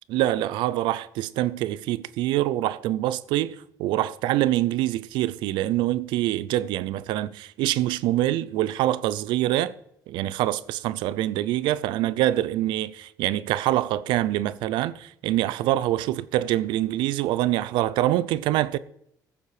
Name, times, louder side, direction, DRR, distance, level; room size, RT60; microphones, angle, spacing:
voice 1, 0.1-9.7 10.1-18.8, right 14 dB, 90° right, 0.5 m, -25 dB
14.5 x 7.3 x 4.9 m
cardioid pair, 115°, 8 cm